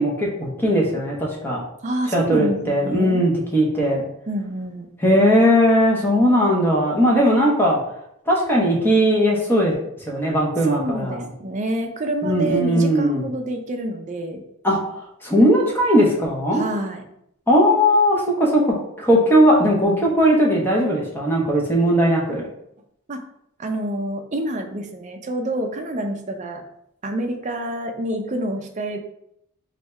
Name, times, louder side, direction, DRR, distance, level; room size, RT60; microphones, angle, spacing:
voice 1, 0.0-1.6 2.1-4.0 5.0-7.8 8.3-9.7 10.1-11.2 12.2-13.2 14.6-14.8 15.2-16.6 17.5-18.7 19.0-22.5, equal, 10° left, -3 dB, 0.9 m, -18 dB
voice 2, 1.8-3.2 4.3-4.9 10.6-14.4 16.5-17.0 23.1-23.2 23.6-26.6 27.0-29.0, right 1 dB, 35° right, 4 dB, 0.5 m, -27 dB
3.3 x 2.7 x 4.4 m, 0.75 s
head